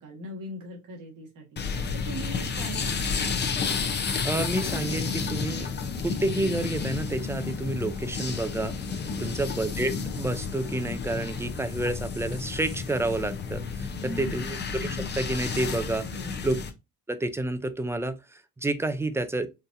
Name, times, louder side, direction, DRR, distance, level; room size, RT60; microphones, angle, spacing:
voice 1, 0.0-1.6 1.9-3.2 9.2-9.5 14.0-14.5 16.0-16.5, right 1 dB, 75° right, 1.5 m, -40 dB
sound 1, 1.6-16.7, left 5 dB, 35° left, 0.6 m, -31 dB
voice 2, 4.2-5.7 6.0-8.7 9.2-16.1 16.4-16.6 17.1-19.5, right 2 dB, 10° right, 0.4 m, -29 dB
4.0 x 2.6 x 2.5 m
cardioid pair, 85°, 32 cm